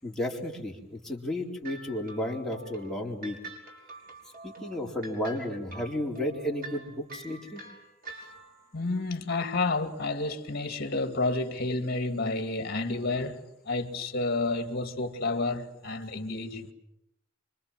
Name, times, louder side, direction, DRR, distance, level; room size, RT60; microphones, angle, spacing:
voice 1, 0.0-3.4 4.4-7.6, left 1 dB, 5° left, 4.1 m, -33 dB
sound 1, 1.6-8.7, right 3 dB, 50° right, 5.8 m, -46 dB
voice 2, 8.7-16.7, left 3 dB, 55° left, 2.3 m, -30 dB
26.5 x 25.0 x 7.5 m
head